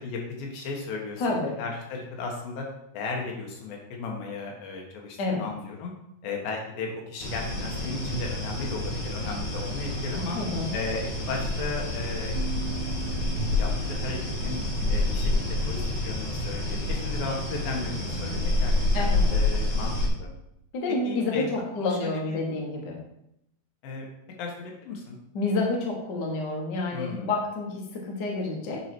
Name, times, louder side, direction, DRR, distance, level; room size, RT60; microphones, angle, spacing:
voice 1, 0.0-2.7 2.9-5.9 6.2-10.4 10.7-12.4 13.6-14.2 14.4-14.6 14.9-19.9 20.2-20.3 21.0-21.5 21.8-22.4 23.8-24.1 24.4-25.2 26.9-27.3, left 4 dB, 90° left, 0 dB, 3.0 m, -35 dB
voice 2, 1.2-1.6 5.2-5.4 10.3-10.7 18.9-19.3 20.7-23.0 25.3-28.8, left 3 dB, 65° left, -1 dB, 1.1 m, -29 dB
sound 1, 7.2-20.1, left 2 dB, 40° left, 1.2 m, -28 dB
sound 2, 12.4-16.2, right 16 dB, 85° right, 2.3 m, -43 dB
8.8 x 3.2 x 4.4 m, 0.78 s
omnidirectional pair, 4.0 m